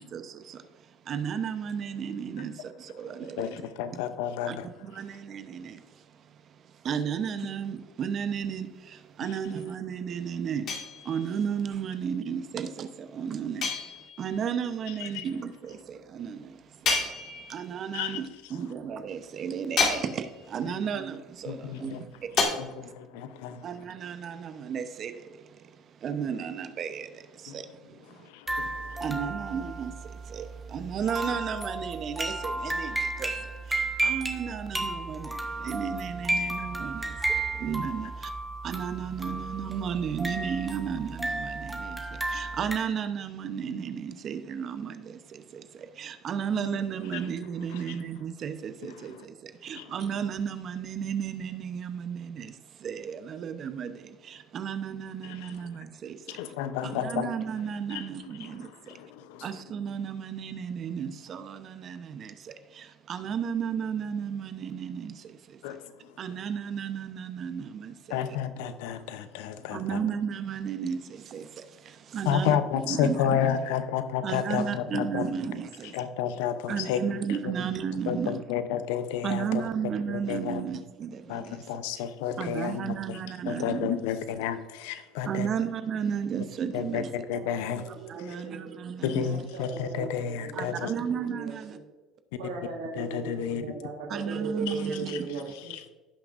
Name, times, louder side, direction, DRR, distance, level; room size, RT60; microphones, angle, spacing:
voice 1, 0.0-3.7 4.5-4.6 4.8-22.9 23.6-28.3 29.0-38.3 38.6-56.3 56.8-59.0 59.4-65.8 66.2-68.4 69.7-72.6 72.9-73.4 74.2-76.0 76.7-78.4 79.2-81.7 82.4-84.0 85.3-87.1 88.1-89.4 90.5-91.8 94.1-95.3, right 7 dB, 50° right, 0.8 m, -34 dB
voice 2, 3.2-4.7 15.0-15.3 17.9-18.2 21.5-22.0 22.6-23.8 27.5-27.6 28.1-29.0 46.5-46.7 47.1-47.2 47.7-48.0 48.9-49.3 49.7-49.9 55.2-55.6 56.3-57.3 57.9-58.1 58.4-59.6 65.6-66.2 68.1-70.0 72.3-75.2 75.9-77.0 78.1-79.7 80.1-80.6 81.3-83.2 83.5-85.5 86.7-87.9 88.2-88.4 89.0-90.9 93.0-93.6 94.7-95.2 95.5-95.8, left 9 dB, 80° left, 0.7 m, -31 dB
sound 1, 10.7-11.4 13.6-14.4 16.8-17.8 19.8-20.6 22.4-22.5, left 4 dB, 50° left, 2.0 m, -29 dB
sound 2, 28.5-42.8, right 2 dB, 5° right, 1.4 m, -33 dB
voice 3, 87.3-88.8 89.2-91.8 92.4-95.7, right 3 dB, 85° right, 1.5 m, -38 dB
16.0 x 5.9 x 2.6 m
hypercardioid pair, 80°, 0 cm